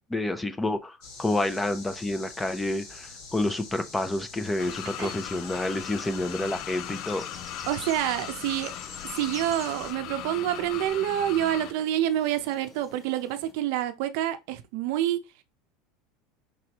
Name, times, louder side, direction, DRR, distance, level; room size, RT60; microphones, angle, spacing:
voice 1, 0.1-7.2, left 2 dB, 10° left, 0.6 m, -29 dB
sound 1, 1.0-9.9, left 4 dB, 75° left, 2.1 m, -45 dB
sound 2, 4.4-13.5, left 3 dB, 30° left, 1.0 m, -48 dB
sound 3, 4.6-11.7, left 13 dB, 55° left, 0.3 m, -39 dB
voice 2, 7.7-8.7 9.1-15.2, right 12 dB, 70° right, 0.6 m, -27 dB
5.1 x 3.2 x 2.9 m
supercardioid pair, 105°, 0 cm